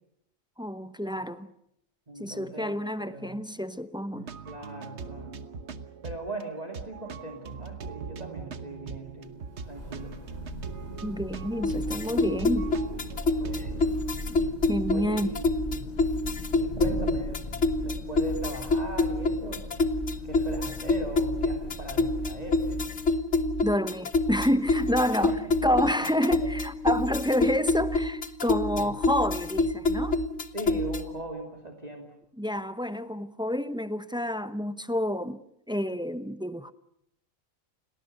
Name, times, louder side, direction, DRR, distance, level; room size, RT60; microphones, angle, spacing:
voice 1, 0.6-1.5 2.2-4.3 11.0-12.7 14.7-15.3 23.6-30.2 32.4-35.4 35.7-36.7, equal, 5° right, 0.6 m, -29 dB
voice 2, 2.1-3.4 4.4-5.3 6.0-9.3 9.6-10.1 11.8-12.4 13.4-14.0 14.9-15.9 16.5-17.4 17.8-19.6 20.2-22.8 25.3-25.4 26.0-26.1 28.7-28.9 30.5-32.1, right 1 dB, 30° right, 2.9 m, -39 dB
sound 1, 4.1-13.8, right 5 dB, 55° right, 1.4 m, -41 dB
Thunder / Rain, 9.1-23.5, left 1 dB, 30° left, 6.3 m, -40 dB
sound 2, 11.6-31.2, left 2 dB, 55° left, 1.5 m, -27 dB
29.5 x 19.0 x 6.7 m
omnidirectional pair, 1.4 m